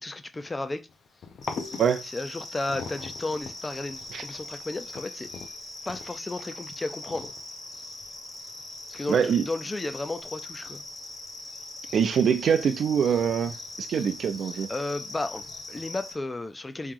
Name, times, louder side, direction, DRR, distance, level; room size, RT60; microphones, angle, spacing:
voice 1, 0.0-0.9 2.1-5.3 5.9-7.3 8.9-10.8 14.7-16.9, left 2 dB, 20° left, 0.4 m, -33 dB
sound 1, 0.9-15.8, left 5 dB, 60° left, 0.6 m, -46 dB
sound 2, 1.4-16.2, left 2 dB, 45° left, 1.2 m, -41 dB
voice 2, 9.1-9.5 11.9-14.7, right 7 dB, 65° right, 0.4 m, -24 dB
3.1 x 2.8 x 3.7 m
cardioid pair, 125°, 0 cm